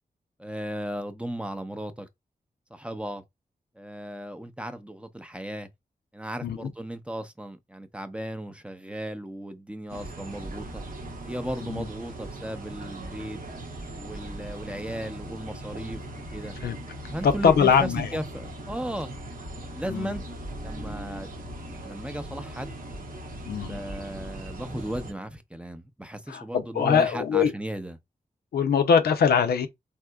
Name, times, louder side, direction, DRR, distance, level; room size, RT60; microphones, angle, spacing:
voice 1, 0.4-2.1 2.7-3.2 3.8-5.7 6.1-10.8 11.3-13.4 14.0-16.5 17.1-19.1 19.7-20.2 20.6-21.3 21.6-22.7 23.5-28.0, right 1 dB, 5° right, 0.5 m, -36 dB
sound 1, 9.9-25.1, right 1 dB, 60° right, 0.8 m, -39 dB
voice 2, 17.2-18.1 19.9-20.1 23.5-23.8 26.3-27.5 28.5-29.7, left 7 dB, 90° left, 0.5 m, -22 dB
3.5 x 2.8 x 2.2 m
cardioid pair, 50°, 16 cm